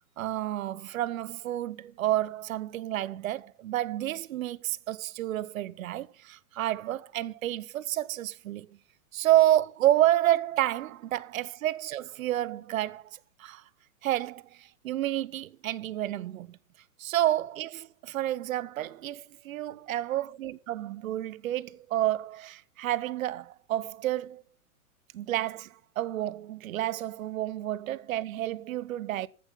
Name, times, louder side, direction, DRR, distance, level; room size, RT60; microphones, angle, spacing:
voice 1, 0.2-8.7 9.1-13.6 14.0-16.6 17.0-24.4 25.1-29.3, right 13 dB, 65° right, 0.9 m, -30 dB
14.0 x 8.0 x 5.3 m
hypercardioid pair, 120°, 44 cm